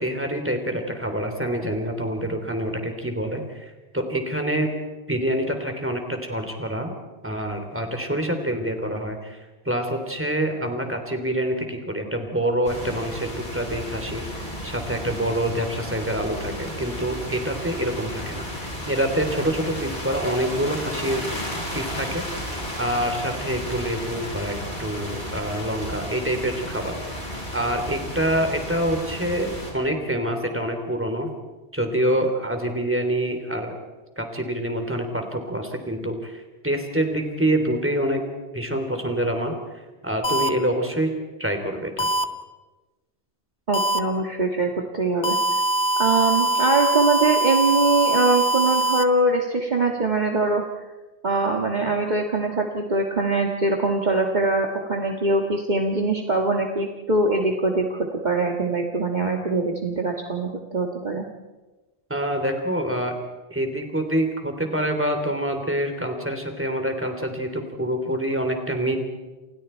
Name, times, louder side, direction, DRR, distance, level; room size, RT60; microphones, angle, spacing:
voice 1, 0.0-4.7 5.1-6.9 7.2-9.4 9.6-21.2 21.7-31.3 31.7-33.7 34.2-38.2 38.5-39.5 40.0-41.1 41.4-42.1 62.1-63.2 63.5-69.0, right 1 dB, 10° right, 4 dB, 3.3 m, -26 dB
sound 1, 12.6-29.7, equal, 45° left, 6.8 m, -33 dB
sound 2, 40.2-40.5 42.0-42.2 43.7-44.0 45.2-49.0, right 3 dB, 85° left, 1.5 m, -22 dB
voice 2, 43.7-45.4 46.0-50.6 51.2-61.2, right 3 dB, 40° right, 1 dB, 1.8 m, -22 dB
29.0 x 28.0 x 4.5 m, 1.2 s
omnidirectional pair, 1.1 m